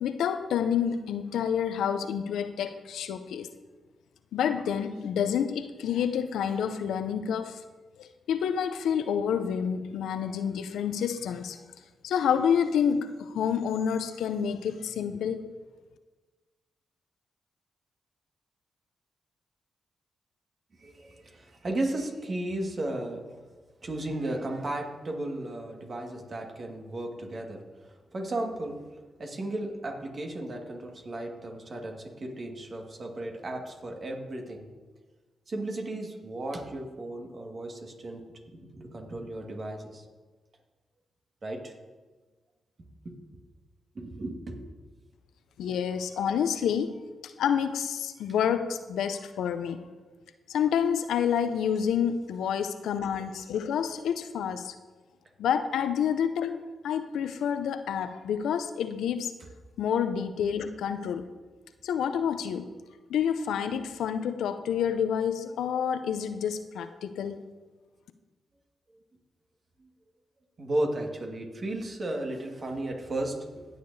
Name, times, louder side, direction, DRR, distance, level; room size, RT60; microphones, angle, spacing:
voice 1, 0.0-3.5 4.3-7.6 8.0-11.6 12.0-15.5 45.6-46.9 47.2-49.8 50.5-54.7 55.4-59.3 59.8-61.3 61.8-62.7 63.1-67.4, left 8 dB, 80° left, 10 dB, 0.5 m, -28 dB
voice 2, 20.8-23.3 23.6-28.9 29.2-34.7 35.5-40.0 41.4-41.8 43.1-43.2 44.0-44.6 69.8-69.9 70.6-73.7, right 1 dB, 50° right, 2 dB, 1.7 m, -35 dB
19.0 x 6.6 x 2.7 m, 1.3 s
supercardioid pair, 45°, 0 cm